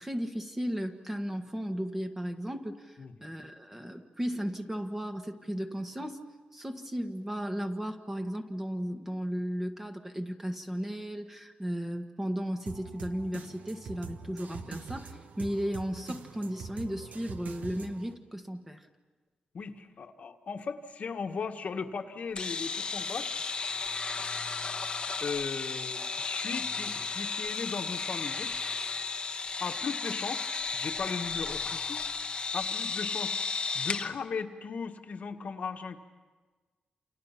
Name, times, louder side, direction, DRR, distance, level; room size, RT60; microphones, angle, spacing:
voice 1, 0.0-6.2 6.5-18.8, equal, 10° right, 4 dB, 1.6 m, -35 dB
sound 1, 12.7-18.1, right 5 dB, 65° right, 1.5 m, -44 dB
voice 2, 19.5-23.3 25.2-28.6 29.6-30.5 30.7-32.0 32.5-33.3 33.7-36.0, left 5 dB, 55° left, 4 dB, 1.6 m, -37 dB
sound 2, 22.3-34.1, left 4 dB, 35° left, 1.2 m, -34 dB
29.0 x 28.5 x 5.9 m, 1.3 s
wide cardioid pair, 130°, 3 cm